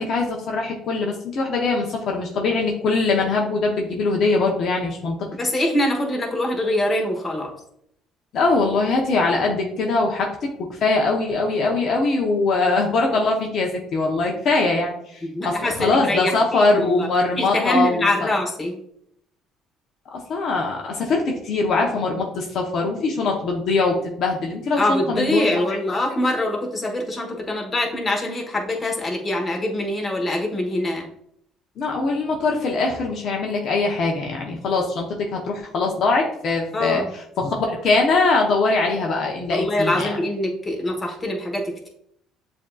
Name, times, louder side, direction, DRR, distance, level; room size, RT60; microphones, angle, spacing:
voice 1, 0.0-5.3 8.3-18.3 20.1-25.8 31.8-40.1, left 3 dB, 60° left, 0 dB, 0.7 m, -22 dB
voice 2, 5.4-7.5 15.2-17.1 17.4-18.7 24.7-31.0 36.7-37.1 39.5-41.9, left 1 dB, 25° left, 1 dB, 1.2 m, -24 dB
7.1 x 2.7 x 2.3 m, 0.71 s
supercardioid pair, 80°, 0 cm